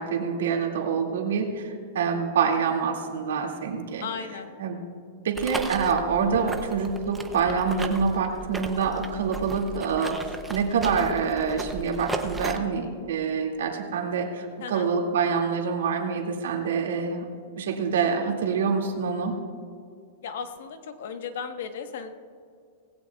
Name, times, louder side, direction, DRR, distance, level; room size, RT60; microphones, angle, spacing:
voice 1, 0.0-4.1 4.6-4.8 5.2-10.2 10.5-17.3 17.6-19.4, right 6 dB, 90° right, 1 dB, 2.3 m, -26 dB
voice 2, 4.0-4.5 14.6-14.9 20.2-22.1, left 6 dB, 70° left, 7 dB, 1.2 m, -35 dB
sound 1, 5.3-12.6, right 3 dB, 10° right, 0.7 m, -36 dB
19.0 x 16.5 x 2.4 m, 2.3 s
supercardioid pair, 160°, 0 cm